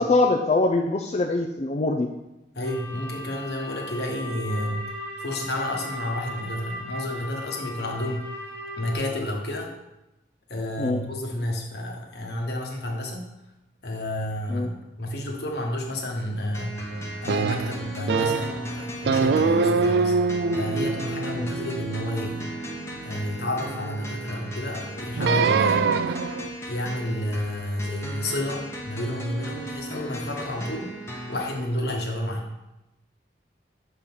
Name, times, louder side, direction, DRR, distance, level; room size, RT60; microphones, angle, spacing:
voice 1, 0.0-2.1 10.8-11.0 14.5-14.7 21.3-21.5, left 2 dB, 40° left, 1 dB, 0.4 m, -23 dB
voice 2, 2.5-8.3 8.8-9.7 10.5-13.3 13.8-16.8 17.2-22.5 23.0-26.0 26.7-31.0 31.3-32.5, left 1 dB, 65° left, 1 dB, 1.2 m, -30 dB
sound 1, 2.6-8.9, left 1 dB, 85° right, 1.5 m, -37 dB
sound 2, 16.5-31.5, right 1 dB, 15° left, 0.9 m, -36 dB
sound 3, 17.3-18.6 19.0-23.4 25.2-26.5, right 4 dB, 65° right, 0.3 m, -24 dB
6.8 x 3.7 x 6.0 m, 0.95 s
head